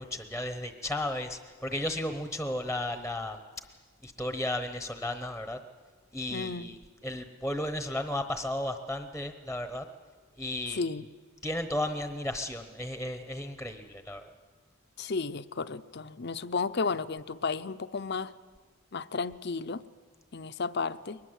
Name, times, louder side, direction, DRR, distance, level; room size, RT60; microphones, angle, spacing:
voice 1, 0.0-3.4 4.0-5.6 6.1-6.8 7.0-9.9 10.4-10.8 11.4-14.3, left 1 dB, ahead, 8 dB, 1.0 m, -34 dB
voice 2, 6.3-6.7 10.7-11.1 15.0-18.3 18.9-19.8 20.3-21.2, left 4 dB, 50° left, 13 dB, 0.7 m, -33 dB
22.0 x 20.5 x 8.1 m, 1.5 s
head